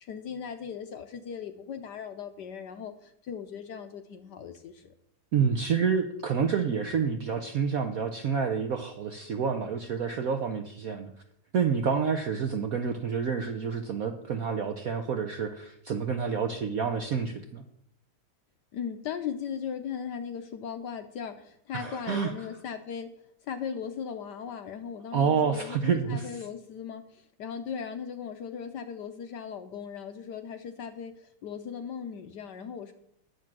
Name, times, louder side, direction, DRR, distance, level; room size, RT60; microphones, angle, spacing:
voice 1, 0.0-4.9 18.7-23.1 23.4-32.9, left 7 dB, 65° left, 8 dB, 1.1 m, -38 dB
voice 2, 5.3-11.1 11.5-17.6 21.7-22.3 25.1-26.3, right 6 dB, 65° right, 6 dB, 0.8 m, -28 dB
10.5 x 7.5 x 6.0 m, 0.75 s
omnidirectional pair, 2.4 m